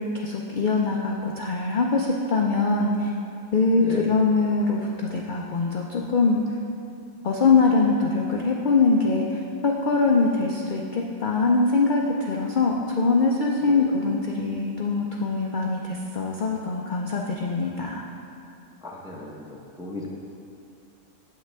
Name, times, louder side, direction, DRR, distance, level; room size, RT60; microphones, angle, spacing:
voice 1, 0.0-3.1 3.5-6.4 7.2-18.1, left 3 dB, 60° left, -1 dB, 0.5 m, -23 dB
voice 2, 3.7-4.1 18.8-20.1, left 2 dB, 5° right, -2 dB, 0.5 m, -35 dB
8.0 x 7.4 x 3.4 m, 2.5 s
omnidirectional pair, 1.5 m